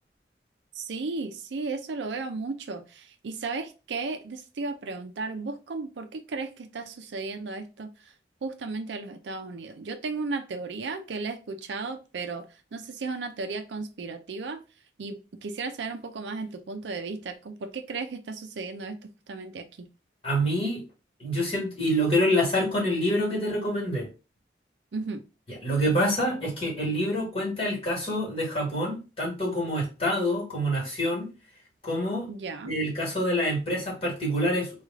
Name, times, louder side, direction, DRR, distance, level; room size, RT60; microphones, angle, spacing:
voice 1, 0.8-8.1 8.4-12.4 12.7-14.6 15.0-19.9 24.9-25.2 32.3-32.7, right 3 dB, 85° right, 0.5 m, -35 dB
voice 2, 20.2-20.8 21.2-24.1 25.6-31.3 31.8-32.3 32.6-34.7, equal, 30° left, 1.6 m, -26 dB
3.2 x 2.4 x 3.5 m
head